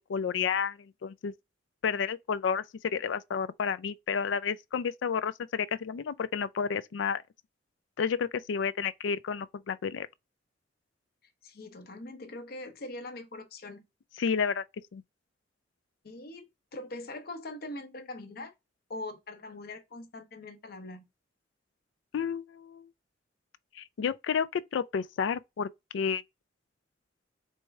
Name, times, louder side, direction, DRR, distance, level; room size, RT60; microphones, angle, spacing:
voice 1, 0.0-1.3 1.8-7.2 8.0-10.1 14.2-14.6 14.9-15.0 22.1-22.9 23.8-26.2, left 6 dB, 85° left, 0.4 m, -31 dB
voice 2, 11.4-13.8 16.0-18.5 18.9-21.1, left 2 dB, 55° left, 0.8 m, -42 dB
4.5 x 3.2 x 3.4 m
head